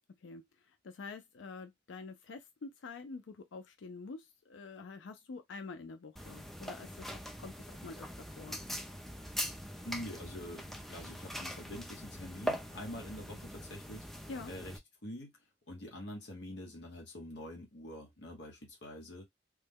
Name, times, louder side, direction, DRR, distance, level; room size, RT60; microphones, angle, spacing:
voice 1, 0.8-8.6 14.3-14.5, left 4 dB, 90° left, 0.4 m, -47 dB
sound 1, 6.2-14.8, equal, ahead, 0.4 m, -42 dB
voice 2, 9.8-14.1 14.5-15.3 15.7-19.2, left 1 dB, 70° left, 1.0 m, -45 dB
3.1 x 2.1 x 3.5 m
head